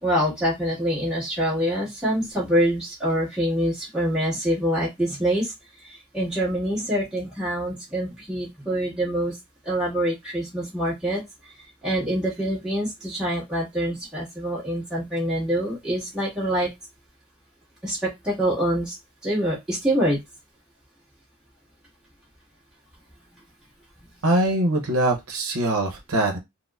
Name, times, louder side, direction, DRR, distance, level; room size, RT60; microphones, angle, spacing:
voice 1, 0.0-5.5 5.8-9.4 9.6-11.2 11.8-16.7 17.8-19.0 19.2-20.2, equal, 5° right, -7 dB, 1.5 m, -25 dB
voice 2, 24.2-26.4, right 1 dB, 75° right, 2 dB, 0.8 m, -22 dB
4.2 x 2.1 x 2.4 m, 0.19 s
head